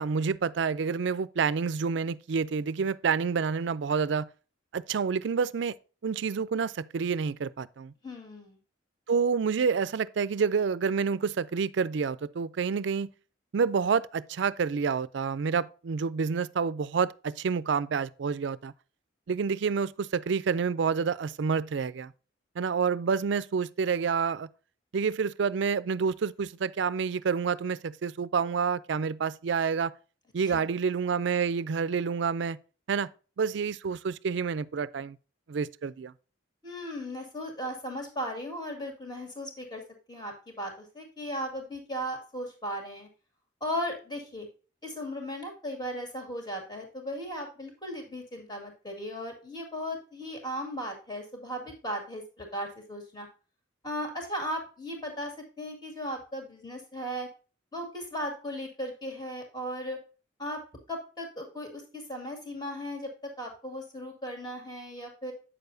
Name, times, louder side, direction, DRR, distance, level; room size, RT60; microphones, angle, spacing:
voice 1, 0.0-4.3 4.7-5.8 6.0-7.9 9.1-13.1 13.5-18.7 19.3-22.1 22.6-24.5 24.9-29.9 30.3-32.6 32.9-33.1 33.4-35.2 35.5-36.1, right 5 dB, 65° right, 0.4 m, -28 dB
voice 2, 8.0-8.6 30.5-30.6 36.6-39.8 40.1-43.1 43.6-44.5 44.8-53.3 53.8-57.3 57.7-60.0 60.4-60.6 60.9-65.3, equal, 20° left, 2.0 m, -37 dB
8.7 x 6.8 x 2.6 m
head